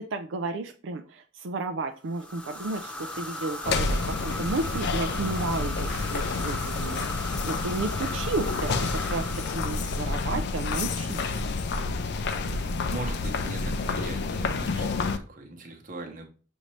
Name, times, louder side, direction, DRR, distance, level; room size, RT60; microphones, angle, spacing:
voice 1, 0.0-9.3 9.5-11.5, right 3 dB, 85° right, 6 dB, 0.4 m, -33 dB
sound 1, 2.1-10.6, left 1 dB, 5° left, 0.8 m, -37 dB
sound 2, 3.6-15.2, left 3 dB, 60° left, 0.4 m, -29 dB
voice 2, 12.9-16.2, right 2 dB, 45° right, 2 dB, 0.9 m, -39 dB
6.4 x 2.7 x 3.1 m, 0.37 s
head